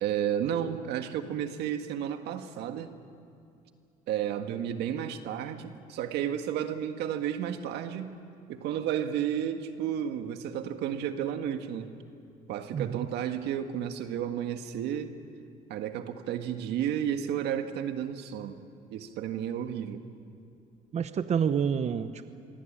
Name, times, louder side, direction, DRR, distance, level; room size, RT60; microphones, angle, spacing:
voice 1, 0.0-2.9 4.1-8.1 8.5-11.9 12.5-15.1 15.7-20.0, right 9 dB, 85° right, 7 dB, 1.7 m, -32 dB
voice 2, 12.7-13.1 20.9-22.3, right 7 dB, 40° right, 11 dB, 0.9 m, -28 dB
26.5 x 22.5 x 8.8 m, 2.5 s
cardioid pair, 110°, 17 cm